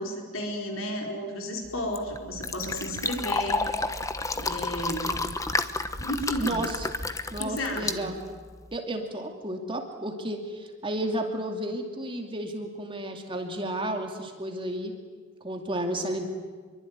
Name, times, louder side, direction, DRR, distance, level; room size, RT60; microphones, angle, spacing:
voice 1, 0.0-3.6 4.3-5.2 6.0-6.6 7.4-8.1, left 1 dB, 65° left, 2 dB, 4.6 m, -33 dB
Fill (with liquid), 1.6-8.7, left 3 dB, 15° left, 1.1 m, -31 dB
voice 2, 4.6-5.0 6.4-6.9 7.3-8.2 8.7-14.9 15.4-16.3, right 1 dB, 25° right, 3 dB, 2.6 m, -32 dB
26.0 x 23.5 x 9.6 m, 1.5 s
head